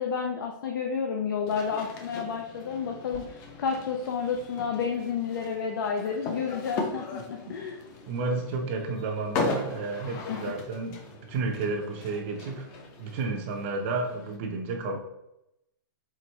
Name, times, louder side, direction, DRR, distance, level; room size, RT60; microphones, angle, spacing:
voice 1, 0.0-7.8 10.3-10.4, left 6 dB, 80° left, 1 dB, 0.6 m, -30 dB
sound 1, 1.5-14.4, left 3 dB, 25° left, 0.6 m, -38 dB
voice 2, 7.2-7.6 8.1-12.7 13.0-15.0, right 3 dB, 35° right, 3 dB, 0.5 m, -32 dB
4.5 x 3.5 x 3.1 m, 0.86 s
hypercardioid pair, 165°, 11 cm